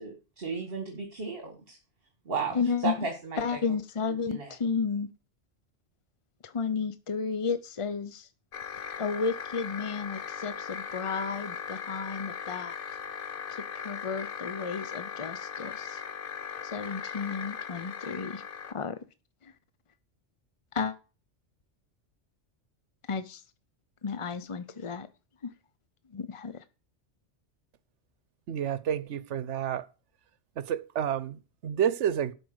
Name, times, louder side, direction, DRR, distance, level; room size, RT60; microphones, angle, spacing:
voice 1, 0.0-1.8 2.3-3.6 4.3-4.6, right 4 dB, 55° right, 2.0 m, -35 dB
voice 2, 2.5-3.1 3.4-5.1 6.4-8.3 9.0-12.8 13.5-16.0 16.6-19.0 19.4-19.5 20.7-20.9 23.1-23.4 24.0-25.1 25.4-25.5 26.1-26.6, left 5 dB, 35° left, 0.5 m, -33 dB
sound 1, 8.5-18.7, left 7 dB, 55° left, 1.0 m, -39 dB
voice 3, 28.5-29.8 30.6-32.3, right 9 dB, 80° right, 1.1 m, -30 dB
12.5 x 5.2 x 7.9 m
omnidirectional pair, 1.2 m